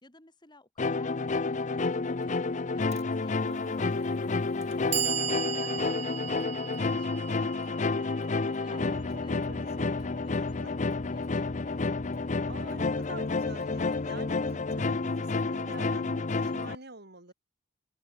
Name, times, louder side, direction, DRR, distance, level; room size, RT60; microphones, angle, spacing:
voice 1, 0.0-6.4 6.8-9.4 10.0-10.4 10.9-12.4, left 2 dB, 25° left, 3.5 m, -56 dB
sound 1, 0.8-16.8, left 3 dB, 40° left, 0.6 m, -30 dB
Clock, 2.9-3.0 4.0-4.1 4.6-10.7, right 10 dB, 35° right, 0.5 m, -37 dB
voice 2, 3.4-4.1 5.5-6.1 8.7-10.0 10.3-10.7 12.4-17.3, right 2 dB, 55° right, 5.5 m, -47 dB
head